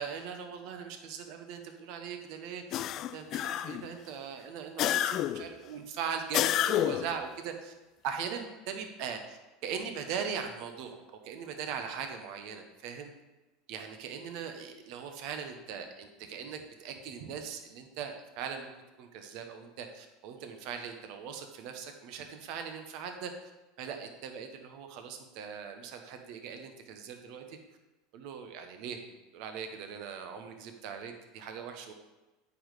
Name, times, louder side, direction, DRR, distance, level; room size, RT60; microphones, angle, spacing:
voice 1, 0.0-2.9 3.1-7.7 8.0-11.0 11.2-13.1 13.7-18.7 19.0-23.3 23.8-27.6 28.1-29.0 29.3-31.9, right 7 dB, 60° right, 6 dB, 1.2 m, -40 dB
sound 1, 2.7-3.9 4.8-5.5 6.3-7.2, left 12 dB, 50° left, 0.3 m, -29 dB
8.6 x 5.4 x 4.9 m, 1.1 s
hypercardioid pair, 85°, 0 cm